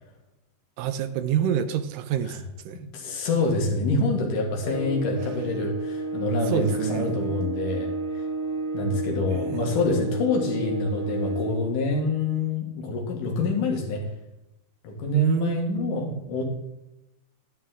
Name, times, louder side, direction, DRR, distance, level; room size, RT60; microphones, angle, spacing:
voice 1, 0.8-2.8 6.5-7.4 9.3-9.8 15.1-16.2, right 9 dB, 80° right, 11 dB, 2.1 m, -27 dB
voice 2, 2.9-8.2 8.7-14.0 14.8-16.4, left 3 dB, 65° left, 1 dB, 3.1 m, -27 dB
sound 1, 4.6-11.7, right 2 dB, 55° right, 5.4 m, -31 dB
10.5 x 10.5 x 3.7 m, 0.92 s
omnidirectional pair, 4.2 m